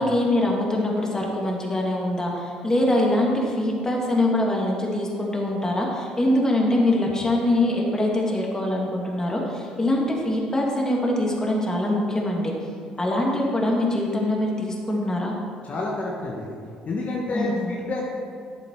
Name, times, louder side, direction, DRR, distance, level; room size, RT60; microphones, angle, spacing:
voice 1, 0.0-12.5 13.0-15.3 17.3-17.7, left 1 dB, 20° left, -2 dB, 2.8 m, -23 dB
voice 2, 15.7-16.5 16.8-18.0, left 2 dB, 45° left, -3 dB, 1.6 m, -29 dB
11.5 x 7.8 x 4.9 m, 2.3 s
hypercardioid pair, 55°, 3 cm